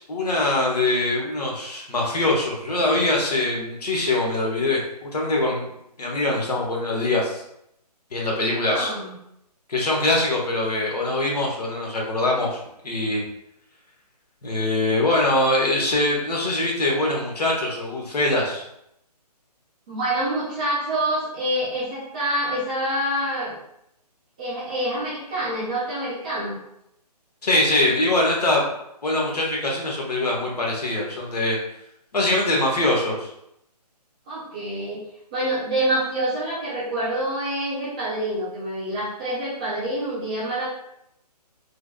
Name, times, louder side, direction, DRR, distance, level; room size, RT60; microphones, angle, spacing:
voice 1, 0.1-5.7 6.0-7.4 8.1-8.9 9.7-13.3 14.4-18.6 27.4-28.7 29.0-31.6 32.1-33.3, left 2 dB, 70° left, -2 dB, 1.0 m, -23 dB
voice 2, 8.5-9.1 19.9-23.6 24.4-26.6 34.3-35.1 35.3-40.7, right 1 dB, 10° right, -9 dB, 0.4 m, -26 dB
3.2 x 2.5 x 2.2 m, 0.78 s
figure-of-eight pair, 150°, 21 cm